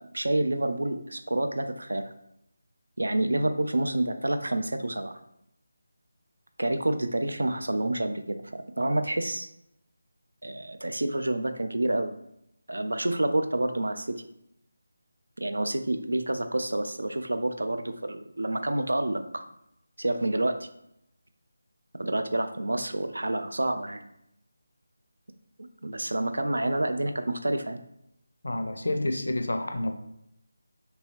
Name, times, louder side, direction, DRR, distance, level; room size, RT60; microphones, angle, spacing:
voice 1, 0.0-2.1 3.0-5.2 6.6-9.5 10.4-12.1 12.7-14.2 15.4-19.4 20.0-20.7 21.9-24.0 25.8-27.8, right 1 dB, 65° right, 7 dB, 0.3 m, -28 dB
voice 2, 28.4-29.9, left 1 dB, 60° left, 5 dB, 0.4 m, -29 dB
2.7 x 2.7 x 3.0 m, 0.79 s
figure-of-eight pair, 155°, 0 cm